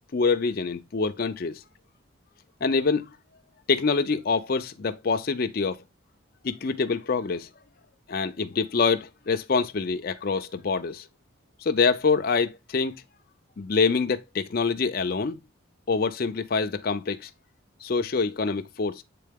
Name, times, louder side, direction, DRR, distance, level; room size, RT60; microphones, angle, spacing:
voice 1, 0.1-1.6 2.6-3.1 3.7-5.8 6.4-7.5 8.1-11.1 11.6-13.0 13.6-15.4 15.9-17.3 17.8-19.0, left 4 dB, 45° left, 0.5 m, -25 dB
7.6 x 3.8 x 3.5 m
head